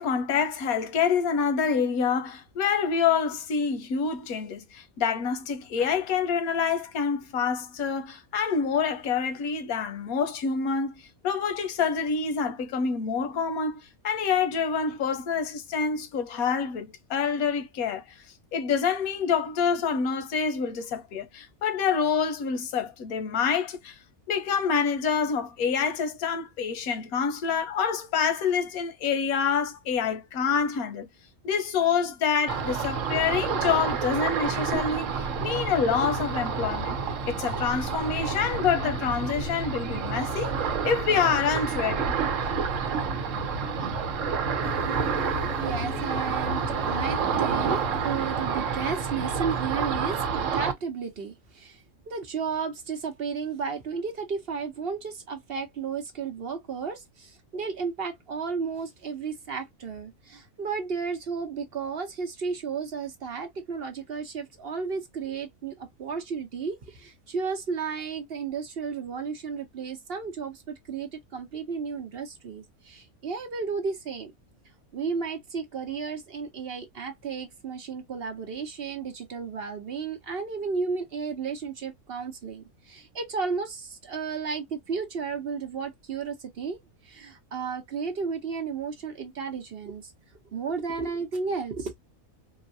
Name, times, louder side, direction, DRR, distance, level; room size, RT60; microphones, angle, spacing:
voice 1, 0.0-18.0 18.5-24.0 24.3-31.1 31.4-37.0 37.3-42.1 42.4-42.7, left 6 dB, 90° left, 1.2 m, -27 dB
Ocean, 32.5-50.7, right 5 dB, 65° right, 1.1 m, -29 dB
Insect, 44.6-49.6, left 5 dB, 55° left, 1.0 m, -43 dB
voice 2, 45.6-46.6 46.9-74.3 74.9-86.8 87.0-90.1 90.5-91.9, right 5 dB, 50° right, 0.9 m, -33 dB
3.9 x 2.1 x 2.6 m
omnidirectional pair, 1.5 m